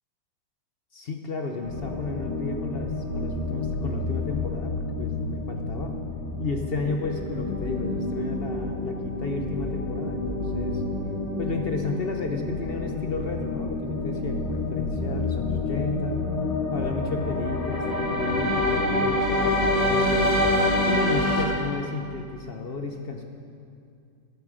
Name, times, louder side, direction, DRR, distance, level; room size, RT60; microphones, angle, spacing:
voice 1, 0.9-6.0 6.4-10.8 11.4-16.2 16.7-20.3 20.8-23.2, left 3 dB, 55° left, 4 dB, 0.6 m, -33 dB
sound 1, 1.6-21.4, left 2 dB, 20° left, 1.2 m, -27 dB
15.0 x 11.0 x 5.0 m, 2.4 s
omnidirectional pair, 2.0 m